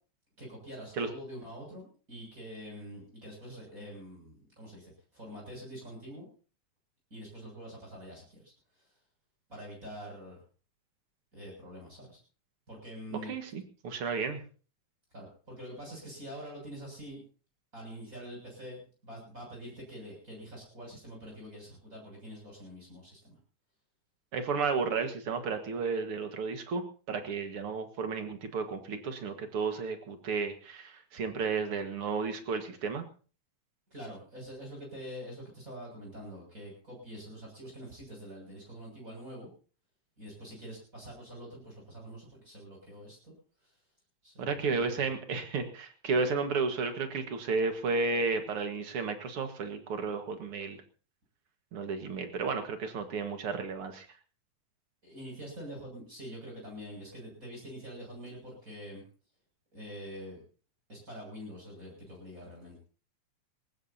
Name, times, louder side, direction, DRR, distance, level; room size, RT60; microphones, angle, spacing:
voice 1, 0.4-6.3 7.1-8.9 9.5-10.4 11.3-12.2 12.7-13.3 15.1-17.2 17.7-23.4 33.9-39.5 40.2-43.3 43.6-43.8 44.2-45.1 55.0-59.0 59.7-60.4 60.9-62.8, equal, 25° right, -2 dB, 7.5 m, -45 dB
voice 2, 13.3-14.4 24.3-33.0 44.4-50.8 51.7-54.1, right 4 dB, 50° right, 7 dB, 2.4 m, -33 dB
21.0 x 18.5 x 2.8 m, 0.39 s
omnidirectional pair, 3.4 m